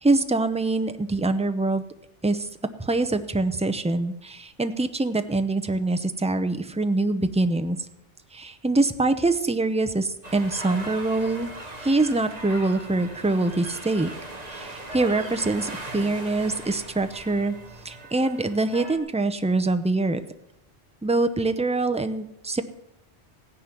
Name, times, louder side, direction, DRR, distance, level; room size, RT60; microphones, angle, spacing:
voice 1, 0.0-1.8 2.2-2.5 2.8-7.8 8.3-11.5 11.8-14.1 14.5-17.5 17.8-20.2 21.0-22.6, right 2 dB, 10° right, 9 dB, 0.4 m, -24 dB
sound 1, 10.2-19.0, right 2 dB, 35° right, 1.7 m, -39 dB
15.5 x 10.0 x 5.9 m, 0.82 s
omnidirectional pair, 1.2 m